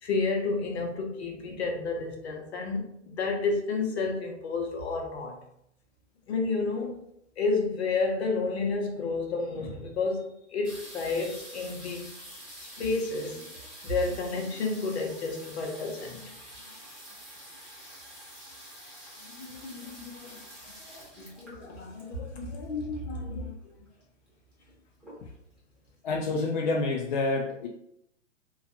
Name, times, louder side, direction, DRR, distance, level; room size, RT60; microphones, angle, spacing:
voice 1, 0.0-5.4 6.3-7.0 7.4-12.1 12.6-16.2 19.4-20.4 21.2-23.5, left 3 dB, 55° left, 2 dB, 0.9 m, -31 dB
sound 1, 10.6-23.2 24.0-24.1 24.3-24.7 25.0-25.6 26.1-26.2 26.4-26.5, equal, 5° right, 1.1 m, -47 dB
voice 2, 26.0-27.7, left 3 dB, 40° left, 0 dB, 0.4 m, -28 dB
3.2 x 2.3 x 2.7 m, 0.75 s
figure-of-eight pair, 115°, 37 cm